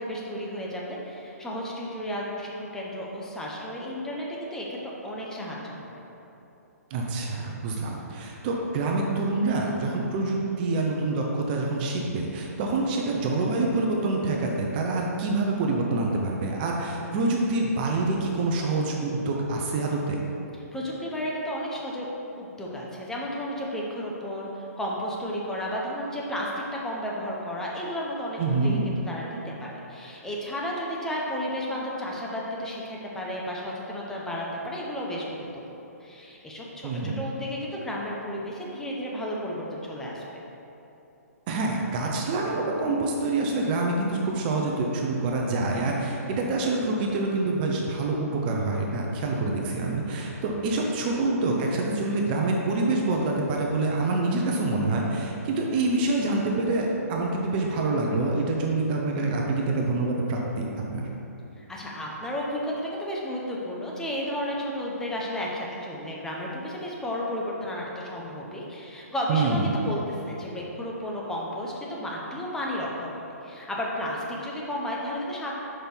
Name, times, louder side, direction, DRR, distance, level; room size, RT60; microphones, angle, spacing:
voice 1, 0.0-6.0 20.7-22.1 22.4-40.4 61.6-75.5, equal, 5° left, -4 dB, 0.9 m, -33 dB
voice 2, 6.9-20.2 28.4-28.8 36.8-37.2 41.5-61.1 69.3-69.8, right 2 dB, 35° right, -1 dB, 0.8 m, -26 dB
6.4 x 5.1 x 4.5 m, 3.0 s
hypercardioid pair, 140°, 9 cm